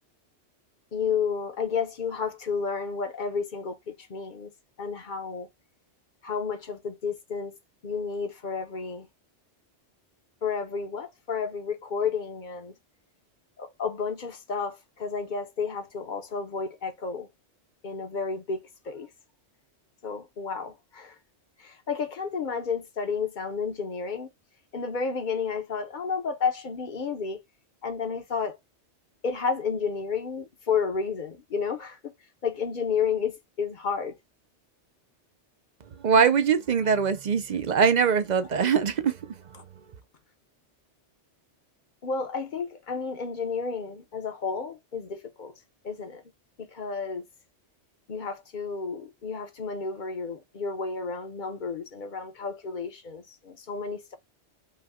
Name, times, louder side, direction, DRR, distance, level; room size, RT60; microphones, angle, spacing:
voice 1, 0.9-4.5 4.8-5.5 6.2-7.5 7.8-9.1 10.4-12.7 13.6-17.3 17.8-18.6 18.8-19.1 20.0-21.2 21.6-24.3 24.7-27.4 27.8-28.6 29.2-32.1 32.4-34.1 39.5-39.6 42.0-45.5 45.8-46.2 46.6-47.2 48.1-54.2, left 5 dB, 45° left, 0.9 m, -31 dB
voice 2, 36.0-39.4, right 6 dB, 50° right, 0.5 m, -22 dB
5.5 x 2.3 x 3.5 m
omnidirectional pair, 1.2 m